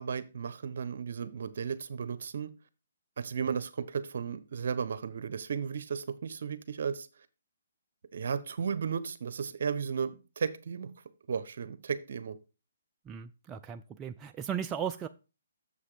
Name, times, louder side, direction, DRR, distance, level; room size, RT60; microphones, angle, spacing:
voice 1, 0.0-2.5 3.2-7.1 8.1-10.9 11.3-12.4, right 6 dB, 65° right, 0.9 m, -34 dB
voice 2, 13.1-15.1, right 8 dB, 15° right, 0.4 m, -36 dB
7.1 x 5.6 x 4.9 m
hypercardioid pair, 150°, 0 cm